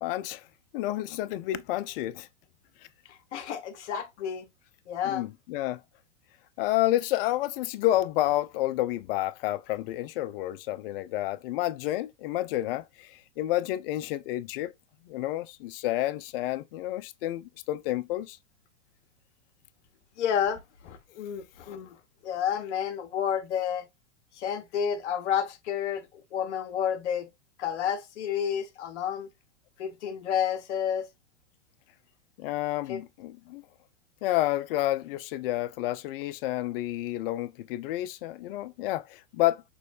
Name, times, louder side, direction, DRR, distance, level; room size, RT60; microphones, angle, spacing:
voice 1, 0.0-0.5 0.7-2.3 5.0-5.8 6.6-14.7 15.0-18.4 32.4-33.6 34.2-39.6, left 15 dB, 50° left, 0.6 m, -30 dB
voice 2, 3.3-4.5 4.9-5.2 20.2-22.0 22.2-23.8 24.4-26.1 26.3-27.3 27.6-29.3 29.8-31.1 32.9-33.0, left 8 dB, 70° left, 1.3 m, -30 dB
6.2 x 3.1 x 2.5 m
hypercardioid pair, 125°, 37 cm